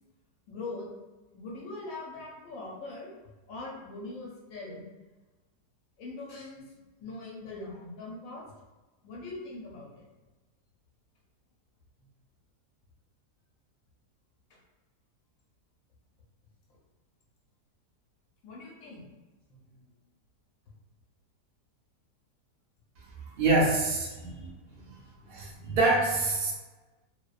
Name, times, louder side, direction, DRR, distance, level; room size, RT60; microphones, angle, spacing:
voice 1, 0.5-0.9 1.3-3.1 3.5-4.9 6.0-6.6 7.0-8.5 9.0-10.1 18.4-19.1 19.5-19.7 24.2-24.4 24.8-25.0, left 2 dB, 65° left, -4 dB, 0.9 m, -42 dB
voice 2, 23.2-24.5 25.3-26.5, right 2 dB, 85° right, -4 dB, 0.4 m, -26 dB
2.6 x 2.1 x 2.3 m, 1.2 s
omnidirectional pair, 1.7 m